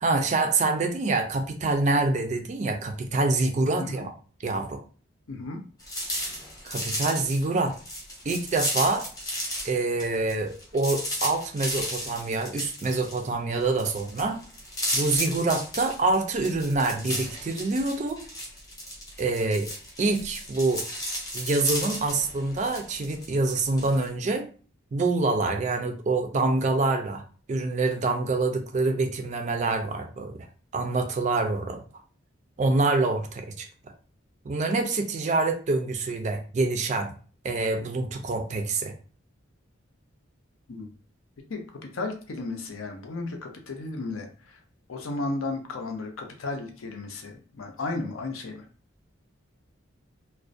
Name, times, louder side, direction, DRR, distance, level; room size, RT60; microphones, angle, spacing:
voice 1, 0.0-4.1 4.4-4.8 6.6-7.7 8.3-9.1 9.6-14.4 14.9-18.2 19.2-19.7 20.0-20.8 21.3-24.5 24.9-27.2 27.5-30.5 30.7-31.8 32.6-33.7 34.4-37.1 37.4-38.9, right 3 dB, 35° right, 5 dB, 0.3 m, -26 dB
voice 2, 3.8-4.1 5.3-5.6 40.7-40.9 41.5-44.6 44.9-48.7, left 3 dB, 80° left, 4 dB, 0.6 m, -34 dB
sound 1, 5.8-9.7 10.0-24.1, equal, 15° left, 0.6 m, -34 dB
2.4 x 2.1 x 2.5 m, 0.39 s
head